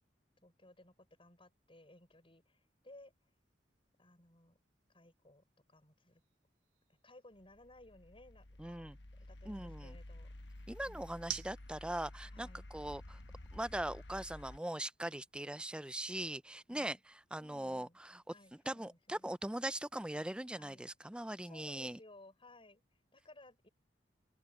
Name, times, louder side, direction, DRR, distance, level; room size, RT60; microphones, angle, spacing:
voice 1, 0.4-3.1 4.0-4.6 4.9-6.2 7.0-10.3 10.9-11.3 12.3-12.7 16.7-17.0 17.4-18.0 18.3-19.3 20.6-20.9 21.4-23.7, left 1 dB, 30° left, 6.1 m, -60 dB
sound 1, 1.5-15.7, right 13 dB, 85° right, 3.9 m, -56 dB
sound 2, 7.3-14.6, left 1 dB, 70° left, 1.2 m, -52 dB
voice 2, 8.6-9.0 9.5-10.0 10.7-13.2 13.5-17.0 17.3-18.2 18.7-22.0, right 1 dB, 5° right, 0.5 m, -41 dB
open air
head